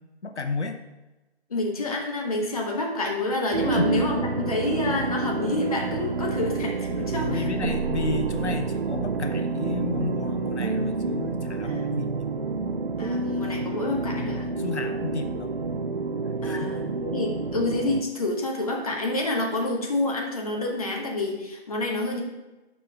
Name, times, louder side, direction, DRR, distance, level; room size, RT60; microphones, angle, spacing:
voice 1, 0.2-0.8 3.7-4.0 4.8-4.9 7.0-12.8 14.3-15.5 16.4-17.0, left 4 dB, 90° left, 7 dB, 0.8 m, -32 dB
voice 2, 1.5-7.5 11.6-12.0 13.0-14.5 16.4-22.2, left 2 dB, 35° left, 1 dB, 1.0 m, -28 dB
sound 1, 3.5-18.0, right 4 dB, 55° right, 0.5 m, -29 dB
6.1 x 4.9 x 5.0 m, 1.1 s
figure-of-eight pair, 165°, 33 cm